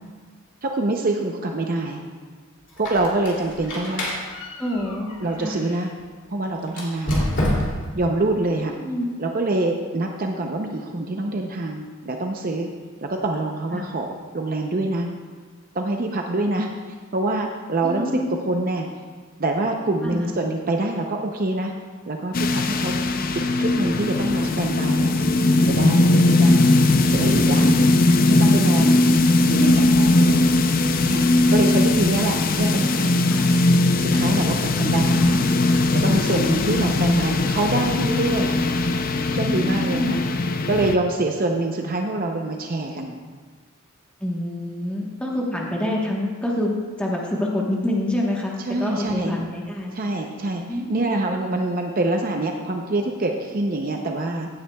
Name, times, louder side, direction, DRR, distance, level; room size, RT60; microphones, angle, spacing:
voice 1, 0.6-2.0 2.8-4.1 5.2-5.9 6.3-7.3 7.9-8.7 9.2-12.7 13.0-14.1 14.3-15.1 15.7-16.7 17.1-18.1 18.5-18.9 19.4-21.7 22.1-22.9 23.6-25.1 25.7-26.7 27.1-27.8 28.3-29.1 29.4-30.5 31.0-31.2 31.5-33.2 34.0-35.4 35.9-38.6 39.2-40.2 40.7-43.2 48.7-49.3 49.9-50.6 50.9-54.5, right 2 dB, 40° right, 2 dB, 0.6 m, -25 dB
Squeak, 2.7-5.9 6.7-8.0, left 1 dB, 60° left, 2.5 m, -28 dB
voice 2, 4.6-5.1 5.4-5.5 8.8-9.1 13.7-13.8 17.8-18.3 20.0-20.3 32.4-32.6 33.3-33.5 34.5-34.6 35.1-35.2 39.5-40.1 44.2-49.9 50.7-51.1, left 1 dB, 5° left, -3 dB, 1.2 m, -27 dB
sound 1, 22.3-41.0, left 2 dB, 40° left, 0.5 m, -19 dB
15.5 x 9.3 x 2.3 m, 1.5 s
head